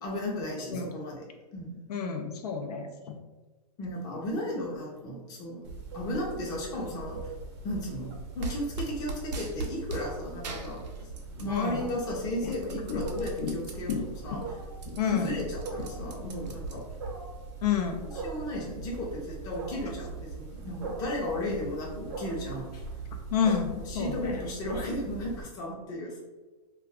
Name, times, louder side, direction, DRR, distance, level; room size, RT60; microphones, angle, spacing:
voice 1, 0.0-1.2 1.5-1.8 3.8-5.7 5.9-7.2 7.6-10.8 11.4-13.9 14.2-14.4 15.1-16.8 18.2-22.8 23.9-26.2, left 1 dB, 20° left, -3 dB, 0.6 m, -34 dB
voice 2, 1.9-3.2 11.5-11.9 12.4-12.5 12.9-13.0 13.4-13.6 13.9-14.0 14.3-14.4 14.9-15.4 17.6-18.0 23.3-24.4, left 7 dB, 70° left, 4 dB, 0.5 m, -30 dB
Wild animals, 5.6-25.4, right 3 dB, 45° right, 0.6 m, -41 dB
sound 1, 8.4-10.1 10.4-11.6 11.9-14.0 14.4-14.5 14.7-17.1, right 3 dB, 85° right, 0.6 m, -39 dB
2.4 x 2.3 x 3.4 m, 1.2 s
hypercardioid pair, 150°, 21 cm